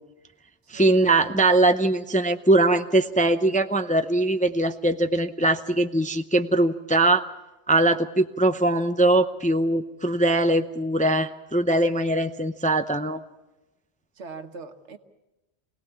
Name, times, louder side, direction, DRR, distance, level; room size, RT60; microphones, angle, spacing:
voice 1, 0.7-7.2 7.7-13.2, right 2 dB, 10° left, 9 dB, 0.5 m, -21 dB
voice 2, 14.2-15.0, right 3 dB, 85° right, 7 dB, 1.5 m, -40 dB
25.5 x 18.0 x 7.1 m, 1.0 s
omnidirectional pair, 1.2 m